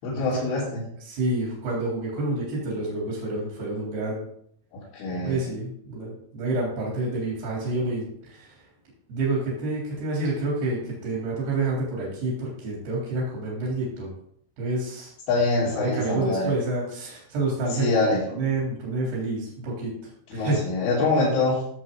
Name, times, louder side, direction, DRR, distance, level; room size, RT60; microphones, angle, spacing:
voice 1, 0.0-0.9 4.7-5.4 15.3-16.5 17.7-18.2 20.3-21.6, left 2 dB, 70° left, -9 dB, 4.9 m, -24 dB
voice 2, 1.0-4.3 5.2-8.6 9.1-14.1 14.6-15.1 15.7-17.9 18.3-19.9 20.3-20.6, right 2 dB, 75° right, -5 dB, 5.4 m, -28 dB
15.5 x 7.8 x 3.8 m, 0.69 s
omnidirectional pair, 4.6 m